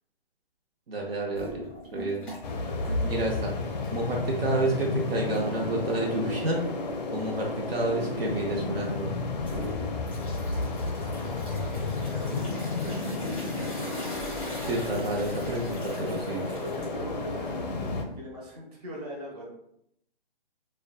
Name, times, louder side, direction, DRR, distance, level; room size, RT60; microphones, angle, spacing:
voice 1, 0.9-1.6 1.9-2.2 3.0-3.5 3.9-6.6 7.1-9.1 14.6-16.5, right 2 dB, 75° right, -1 dB, 0.7 m, -29 dB
sound 1, 1.3-2.6 2.8-4.2 4.6-4.7 5.3-5.4 9.3-18.1, equal, 5° left, 0.6 m, -41 dB
sound 2, 2.4-18.0, left 3 dB, 45° left, 0.4 m, -32 dB
voice 2, 2.5-3.1 11.1-12.5 12.8-14.2 16.2-19.5, right 1 dB, 40° right, -3 dB, 0.8 m, -43 dB
2.5 x 2.1 x 2.3 m, 0.75 s
hypercardioid pair, 140°, 30 cm